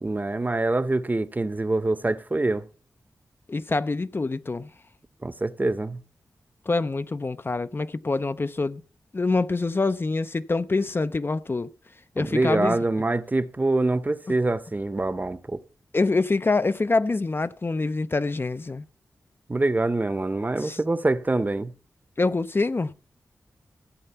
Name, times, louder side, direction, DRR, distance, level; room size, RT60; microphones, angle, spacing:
voice 1, 0.0-2.7 5.2-6.0 12.2-15.6 19.5-21.7, right 2 dB, 30° right, 0.8 m, -25 dB
voice 2, 3.5-4.7 6.7-8.8 9.1-11.7 12.2-12.8 15.9-18.8 20.6-20.8 22.2-22.9, left 3 dB, 35° left, 0.5 m, -25 dB
14.5 x 7.8 x 5.6 m
cardioid pair, 60°, 6 cm